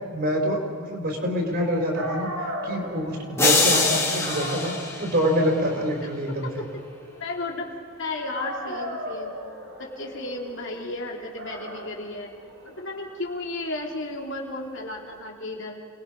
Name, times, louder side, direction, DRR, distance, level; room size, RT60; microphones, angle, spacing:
voice 1, 0.1-2.3 2.6-6.6, equal, 45° right, 1 dB, 4.9 m, -26 dB
Dog, 1.6-1.7 1.9-8.0 8.3-15.1, equal, 65° right, 5.7 m, -38 dB
sound 1, 3.4-5.7, left 3 dB, 10° left, 2.3 m, -24 dB
voice 2, 6.3-6.7 7.1-7.7 8.0-9.3 9.8-12.3 12.6-15.8, left 2 dB, 55° left, 0 dB, 3.1 m, -33 dB
29.0 x 21.0 x 5.3 m, 2.3 s
head